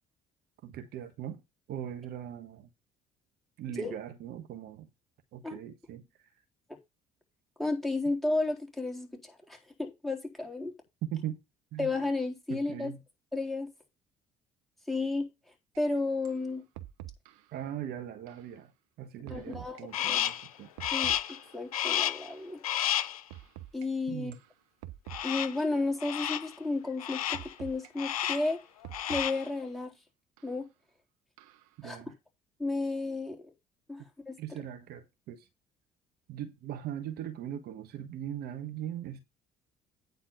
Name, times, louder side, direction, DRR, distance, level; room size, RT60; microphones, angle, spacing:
voice 1, 0.6-1.4 1.7-2.7 3.6-4.9 5.3-6.3 11.0-11.4 11.7-11.9 12.5-13.0 17.5-18.7 19.0-20.7 24.1-24.4 31.8-32.2 34.4-35.5 36.3-39.2, right 10 dB, 60° right, 1.3 m, -40 dB
voice 2, 7.6-10.7 11.8-12.9 13.3-13.7 14.9-15.3 15.8-16.6 19.3-20.3 20.9-22.6 23.7-24.3 25.2-28.6 29.1-29.9 30.4-30.7 31.8-32.0 32.6-33.4 33.9-34.3, left 2 dB, ahead, 3.8 m, -33 dB
sound 1, 15.7-15.8 16.2-16.4 16.7-17.5 18.3-18.5 19.3-19.8 20.3-21.7 22.3-22.5 23.3-23.9 24.3-24.5 24.8-25.7 26.3-26.6 27.3-27.9 28.3-29.7 30.4-30.5 31.4-31.7, right 14 dB, 80° right, 0.9 m, -47 dB
Crow, 19.9-20.5 20.8-21.4 21.7-22.3 22.6-23.2 25.1-25.6 26.0-26.5 27.0-27.5 28.0-28.5 28.8-29.5, left 11 dB, 90° left, 0.5 m, -31 dB
9.3 x 4.0 x 7.3 m
hypercardioid pair, 55°, 18 cm